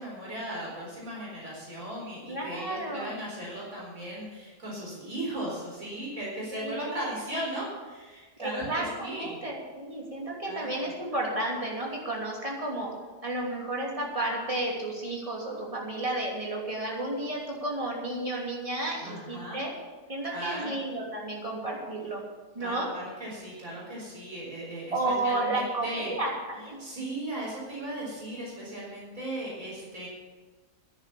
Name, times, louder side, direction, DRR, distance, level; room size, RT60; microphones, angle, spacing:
voice 1, 0.0-9.4 10.4-10.9 19.0-19.6 20.3-20.7 22.6-26.1 26.8-30.1, right 1 dB, 55° right, -5 dB, 4.7 m, -37 dB
voice 2, 2.3-3.1 6.5-7.0 8.4-12.9 13.2-19.7 20.1-22.2 22.5-22.9 24.9-26.8, right 1 dB, 20° right, -3 dB, 3.0 m, -32 dB
10.5 x 10.5 x 7.0 m, 1.3 s
omnidirectional pair, 1.7 m